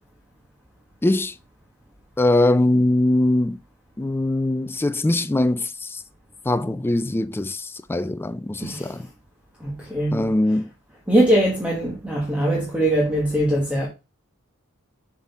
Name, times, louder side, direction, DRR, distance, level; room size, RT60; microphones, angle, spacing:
voice 1, 1.0-1.3 2.2-3.6 4.0-6.0 6.5-9.1 10.1-10.7, left 1 dB, 10° left, 0.3 m, -21 dB
voice 2, 8.6-9.0 9.6-10.3 11.1-13.9, right 1 dB, 5° right, 1.3 m, -21 dB
7.4 x 4.0 x 4.1 m
head